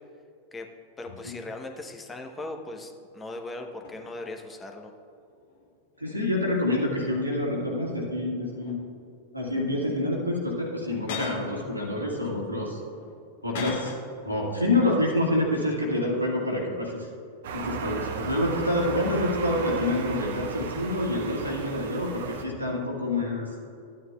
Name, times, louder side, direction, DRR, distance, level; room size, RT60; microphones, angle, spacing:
voice 1, 1.0-4.9, left 2 dB, 15° left, 4 dB, 0.8 m, -38 dB
sound 1, 3.2-3.3 3.8-4.4 5.1-6.7 7.0-8.0 8.4-9.1 9.7-10.0 10.7-11.6 12.2-14.2 14.4-14.7, left 4 dB, 55° left, 1.1 m, -40 dB
voice 2, 6.0-8.8 9.3-12.8 13.4-14.0 14.2-17.1 17.5-23.5, left 1 dB, 85° right, -3 dB, 1.8 m, -27 dB
sound 2, 17.4-22.5, right 5 dB, 60° right, 0.8 m, -35 dB
13.5 x 9.4 x 2.3 m, 2.5 s
figure-of-eight pair, 90°, 0 cm